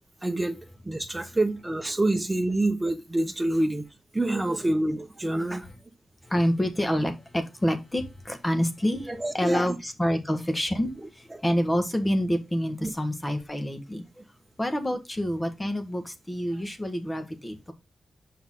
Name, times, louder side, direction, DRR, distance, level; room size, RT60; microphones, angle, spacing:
voice 1, 0.2-0.6 0.8-3.8 4.1-5.7 9.1-9.8 12.8-12.9, right 1 dB, 15° right, 1.2 m, -27 dB
voice 2, 6.2-14.0 14.6-17.7, equal, 15° left, 1.5 m, -27 dB
7.1 x 5.7 x 3.8 m
cardioid pair, 90°, 0 cm